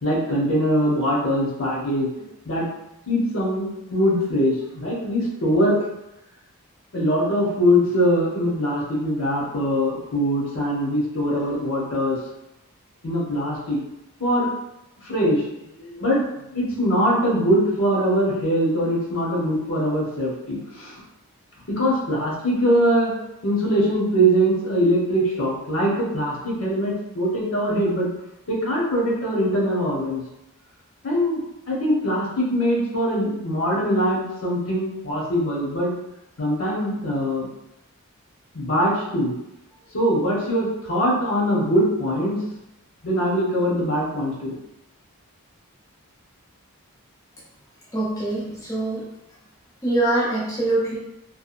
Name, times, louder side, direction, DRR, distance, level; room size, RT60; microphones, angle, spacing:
voice 1, 0.0-2.7 3.1-5.8 6.9-12.2 13.0-13.8 14.2-14.5 15.0-15.4 15.7-16.2 16.5-20.9 21.7-23.1 23.4-28.1 28.5-30.2 31.0-31.4 31.7-35.9 36.4-37.5 38.5-39.3 39.9-42.4 43.0-44.5, equal, 60° left, -5 dB, 0.8 m, -22 dB
voice 2, 47.9-49.0 49.8-51.0, right 2 dB, 15° left, -8 dB, 0.6 m, -23 dB
2.7 x 2.2 x 2.4 m, 0.87 s
head